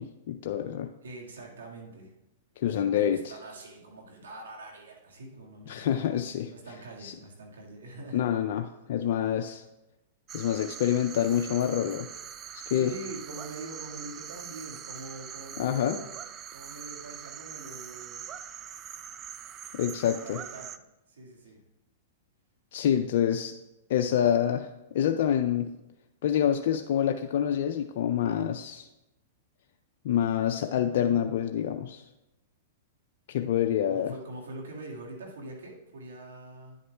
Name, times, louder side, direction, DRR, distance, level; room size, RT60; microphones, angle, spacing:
voice 1, 0.0-0.9 2.6-3.2 5.7-6.5 7.0-7.1 8.1-8.6 8.9-9.6 10.3-12.1 12.7-12.9 15.6-16.0 19.7-20.4 22.7-23.5 23.9-25.7 26.2-28.9 30.0-32.0 33.3-34.1, left 10 dB, 60° left, 5 dB, 0.4 m, -27 dB
voice 2, 1.0-2.1 2.9-6.1 6.5-8.2 12.7-16.2 16.5-18.2 20.2-20.8 21.1-21.6 33.9-36.8, right 2 dB, 90° right, 0 dB, 1.7 m, -44 dB
sound 1, 10.3-20.8, right 9 dB, 30° right, 0.3 m, -43 dB
9.9 x 8.3 x 2.3 m, 0.95 s
hypercardioid pair, 125°, 0 cm